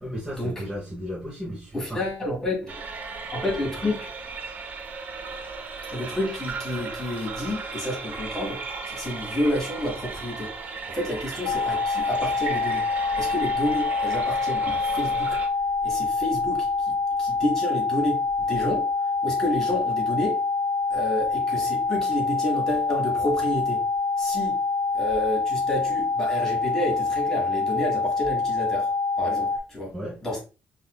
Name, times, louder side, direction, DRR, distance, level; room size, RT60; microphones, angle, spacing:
voice 1, 0.0-2.0 29.9-30.2, equal, 10° right, 0.9 m, -34 dB
voice 2, 1.7-2.8 3.3-4.1 5.9-8.6 8.9-10.5 10.8-12.8 13.2-15.4 15.8-18.9 19.2-20.4 20.9-23.8 24.2-24.6 24.9-28.9 29.2-29.9 30.2-30.4, left 1 dB, 15° left, 1.5 m, -29 dB
sound 1, 2.7-15.5, right 4 dB, 45° right, 0.6 m, -36 dB
sound 2, 11.5-29.6, left 4 dB, 85° left, 0.3 m, -26 dB
5.4 x 2.5 x 2.2 m
cardioid pair, 170°, 4 cm